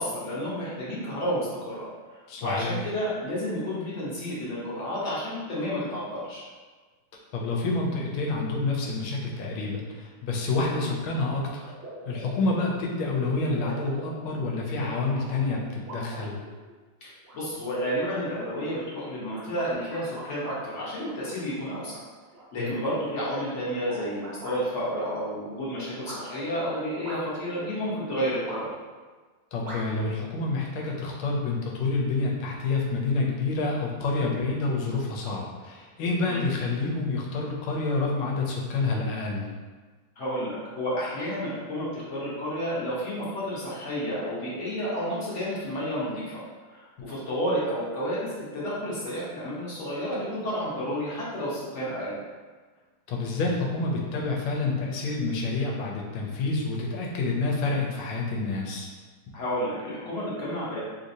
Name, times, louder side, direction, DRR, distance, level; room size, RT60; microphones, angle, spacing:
voice 1, 0.0-1.9 2.4-6.4 10.7-10.9 17.0-22.0 22.5-28.7 36.2-36.4 40.2-46.4 46.7-52.2 59.3-60.8, equal, 50° left, -8 dB, 0.9 m, -31 dB
voice 2, 2.3-2.7 7.3-11.7 12.0-16.4 22.6-22.7 29.5-39.5 53.1-58.9, left 3 dB, 85° left, -2 dB, 1.5 m, -28 dB
sound 1, 11.2-11.3 11.6-16.7 17.2-17.7 18.0-18.1 18.7-20.6 21.0-21.9 22.3-24.6 25.0-25.1 26.0-26.2 27.0-27.5 28.5-28.9 29.6-29.8, right 2 dB, 55° right, 0.7 m, -42 dB
3.3 x 2.8 x 2.6 m, 1.4 s
omnidirectional pair, 2.3 m